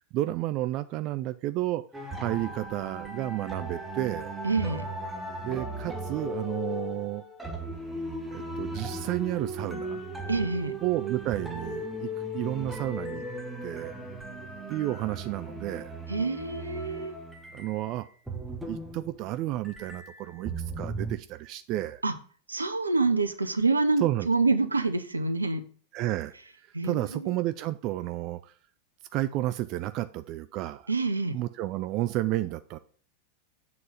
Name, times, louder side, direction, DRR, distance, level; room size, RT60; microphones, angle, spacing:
voice 1, 0.1-1.8 2.2-4.3 5.4-7.2 8.3-10.0 10.8-13.3 13.6-13.9 14.7-16.0 17.5-18.1 18.7-22.0 24.0-24.3 25.9-26.3 26.8-28.5 29.1-30.9 31.3-32.8, right 15 dB, 40° right, 11 dB, 0.4 m, -31 dB
sound 1, 1.9-19.4 19.6-21.2, right 1 dB, 5° right, 1.1 m, -37 dB
voice 2, 4.4-4.9 10.3-10.7 16.1-17.2 22.0-22.1 22.5-25.6 26.7-27.3 30.9-31.4, right 3 dB, 80° right, 9 dB, 0.7 m, -27 dB
7.6 x 3.9 x 5.8 m, 0.43 s
figure-of-eight pair, 90°, 0 cm